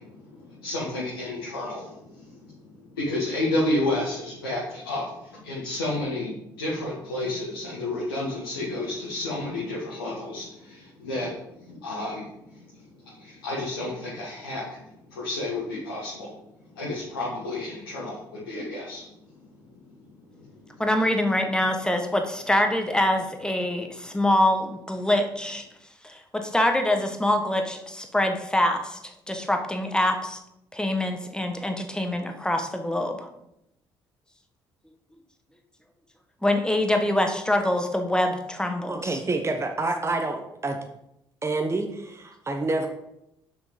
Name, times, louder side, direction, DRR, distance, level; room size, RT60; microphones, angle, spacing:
voice 1, 0.0-2.6 2.9-11.3 11.6-12.6 13.0-14.8 15.1-16.3 16.7-19.0, left 2 dB, 80° left, -7 dB, 1.7 m, -31 dB
voice 2, 20.8-25.6 26.0-29.0 29.3-30.4 30.7-33.3 36.4-39.2, left 1 dB, 5° left, 5 dB, 1.5 m, -25 dB
voice 3, 38.9-40.8 41.4-42.9, right 2 dB, 25° right, 4 dB, 1.1 m, -28 dB
7.4 x 6.3 x 5.4 m, 0.83 s
figure-of-eight pair, 45°, 12 cm